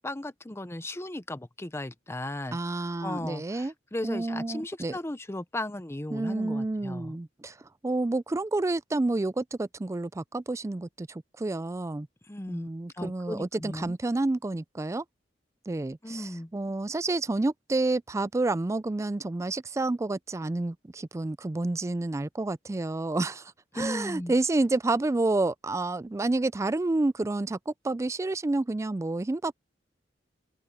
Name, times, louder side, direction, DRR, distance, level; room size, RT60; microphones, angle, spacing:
voice 1, 0.0-2.6 3.0-7.2 12.3-12.7 13.0-14.0 16.0-16.5 23.7-24.3, left 1 dB, 15° left, 0.7 m, -36 dB
voice 2, 2.5-3.7 4.0-4.9 6.1-7.5 7.8-12.1 12.5-15.0 15.7-29.5, right 2 dB, 15° right, 0.3 m, -29 dB
open air
head